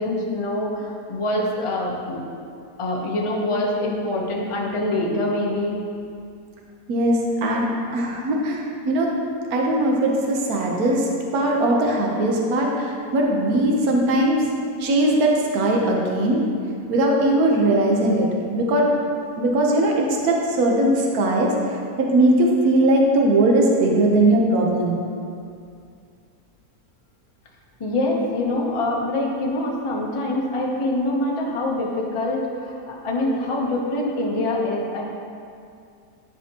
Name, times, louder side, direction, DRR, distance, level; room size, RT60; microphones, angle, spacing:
voice 1, 0.0-2.2 2.8-5.8 27.8-35.0, left 1 dB, 30° left, -2 dB, 0.6 m, -25 dB
voice 2, 6.9-9.1 9.5-11.1 11.3-14.4 14.8-16.4 16.9-18.3 18.5-18.9 19.4-21.5 22.0-25.0, right 1 dB, 65° right, -1 dB, 1.3 m, -19 dB
10.5 x 5.0 x 2.9 m, 2.4 s
omnidirectional pair, 1.7 m